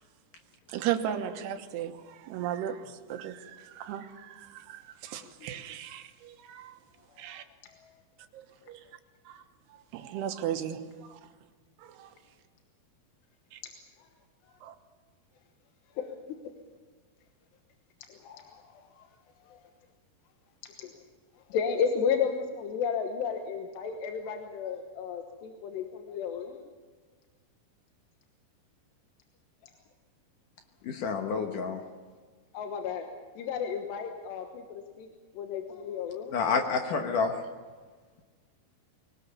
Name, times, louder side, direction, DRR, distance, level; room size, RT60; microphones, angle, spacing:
voice 1, 0.7-6.7 7.2-7.4 8.7-8.8 9.3-9.4 9.9-10.8 11.1-11.2 11.8-12.1 13.5-13.6 14.6-14.7, right 10 dB, 80° right, 7 dB, 3.3 m, -36 dB
voice 2, 5.2-5.5 7.6-8.0 14.0-14.1 15.9-16.1 18.1-19.1 19.5-19.6 20.8-20.9 21.5-26.6 32.5-33.1 33.4-35.1 35.3-36.4, left 6 dB, 85° left, 4 dB, 3.4 m, -33 dB
voice 3, 30.8-31.8 36.3-37.4, left 5 dB, 65° left, 4 dB, 2.4 m, -28 dB
23.0 x 19.0 x 7.1 m, 1.5 s
omnidirectional pair, 4.8 m